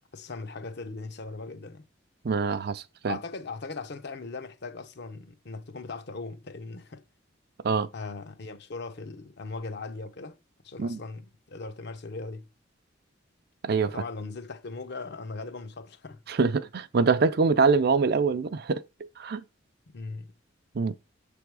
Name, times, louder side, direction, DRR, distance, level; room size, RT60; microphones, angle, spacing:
voice 1, 0.1-1.9 3.1-7.0 7.9-10.4 10.6-12.5 13.9-16.2 19.9-20.3, left 3 dB, 55° left, 0.7 m, -39 dB
voice 2, 2.2-3.2 7.6-7.9 10.8-11.0 13.6-13.9 16.3-18.8 19.2-19.4 20.7-20.9, right 4 dB, 50° right, 0.4 m, -24 dB
6.8 x 3.5 x 4.7 m
head